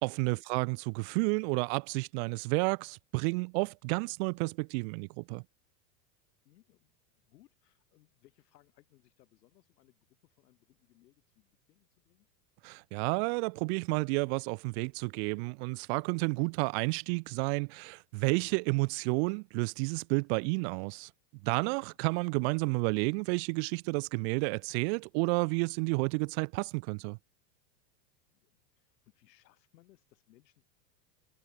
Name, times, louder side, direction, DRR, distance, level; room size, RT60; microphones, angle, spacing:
voice 1, 0.0-5.4 12.6-21.1 21.4-27.2, right 33 dB, 45° right, 0.5 m, -31 dB
voice 2, 6.5-12.3 21.8-22.0 28.3-30.6, left 16 dB, 75° left, 5.2 m, -66 dB
supercardioid pair, 135°, 50 cm